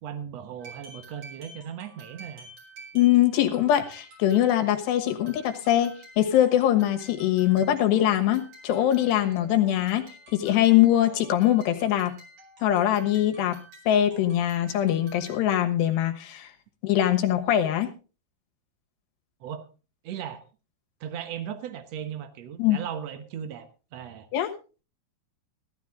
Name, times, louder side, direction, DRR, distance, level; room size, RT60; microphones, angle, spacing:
voice 1, 0.0-2.5 19.4-19.6 20.0-20.4 21.0-24.3, right 9 dB, 90° right, 9 dB, 1.4 m, -37 dB
sound 1, 0.6-15.7, right 2 dB, 40° right, 6.1 m, -50 dB
voice 2, 2.9-10.1 10.3-12.2 12.6-13.6 13.9-16.5 16.8-17.9 22.6-22.8 24.3-24.5, left 12 dB, 80° left, 5 dB, 3.5 m, -22 dB
15.5 x 12.5 x 3.6 m, 0.34 s
omnidirectional pair, 4.8 m